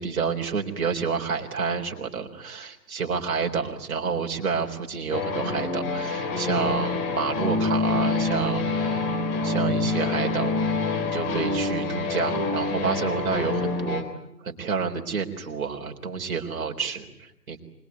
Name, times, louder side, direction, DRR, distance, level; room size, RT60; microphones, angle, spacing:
voice 1, 0.0-9.0 9.4-10.8 11.0-14.0 14.4-17.6, right 5 dB, 60° right, 2 dB, 4.0 m, -29 dB
sound 1, 5.1-14.0, left 3 dB, 25° left, 3.8 m, -26 dB
25.5 x 21.5 x 9.5 m, 0.80 s
hypercardioid pair, 150°, 48 cm